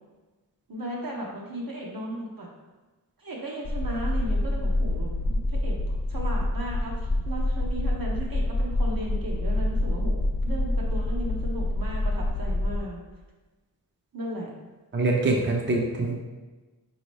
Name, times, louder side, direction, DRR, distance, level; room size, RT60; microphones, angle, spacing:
voice 1, 0.7-2.5 3.2-5.8 6.1-13.0 14.1-14.5, right 1 dB, 70° right, -2 dB, 0.9 m, -36 dB
sound 1, 3.7-12.8, left 1 dB, 35° left, 0.4 m, -27 dB
voice 2, 14.9-16.2, right 2 dB, 30° right, 0 dB, 0.5 m, -24 dB
4.3 x 2.8 x 3.1 m, 1.2 s
wide cardioid pair, 45°, 36 cm